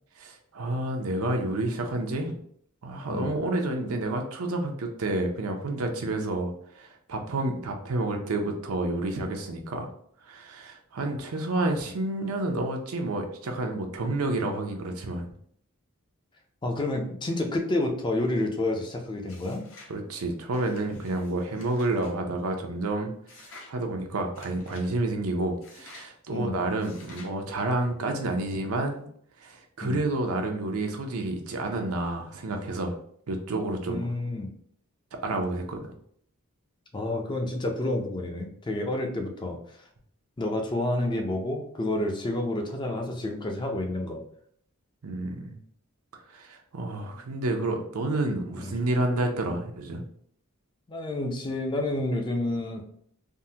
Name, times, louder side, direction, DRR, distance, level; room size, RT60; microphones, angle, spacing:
voice 1, 0.2-2.4 2.8-9.9 10.3-15.3 19.9-23.1 23.4-29.1 29.4-33.0 33.3-34.1 35.2-35.9 45.0-45.6 46.3-50.0, right 2 dB, 85° right, 3 dB, 0.6 m, -29 dB
voice 2, 3.1-3.4 16.6-19.6 26.3-26.6 29.8-30.0 33.9-34.5 36.9-39.6 40.4-44.2 48.6-48.7 50.9-52.8, left 1 dB, 20° left, 3 dB, 0.4 m, -29 dB
sound 1, 19.3-20.0 20.5-22.1 23.3-23.7 24.3-24.9 25.6-26.1 26.8-27.4, left 3 dB, 60° left, 0.8 m, -50 dB
3.6 x 2.1 x 2.7 m, 0.64 s
head